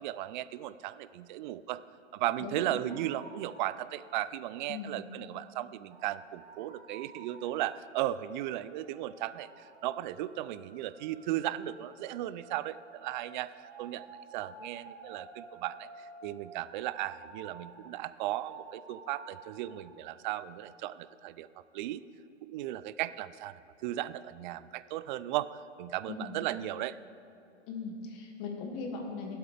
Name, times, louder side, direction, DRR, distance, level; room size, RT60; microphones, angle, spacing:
voice 1, 0.0-1.8 2.1-14.1 14.3-21.5 21.7-22.0 22.4-27.0, right 14 dB, 45° right, 16 dB, 0.4 m, -36 dB
voice 2, 2.4-2.8 4.7-5.1 26.1-26.4 27.7-29.4, left 4 dB, 45° left, 1 dB, 2.2 m, -39 dB
sound 1, 2.7-20.0, right 3 dB, 65° right, 1.9 m, -53 dB
18.0 x 8.0 x 3.4 m, 2.9 s
hypercardioid pair, 115°, 36 cm